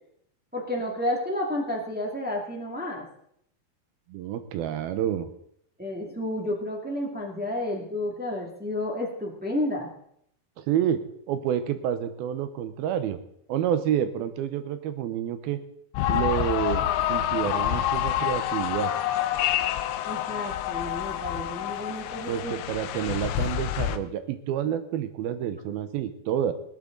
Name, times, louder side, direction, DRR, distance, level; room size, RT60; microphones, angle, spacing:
voice 1, 0.5-3.1 5.8-9.9 20.0-22.6, left 1 dB, 5° right, -2 dB, 0.7 m, -31 dB
voice 2, 4.1-5.3 10.6-13.2 13.5-15.6 16.1-16.8 17.1-18.9 22.3-26.5, right 10 dB, 75° right, 10 dB, 2.7 m, -28 dB
sound 1, 16.0-24.0, left 12 dB, 90° left, 2.7 m, -27 dB
18.5 x 12.5 x 3.9 m, 0.72 s
omnidirectional pair, 4.5 m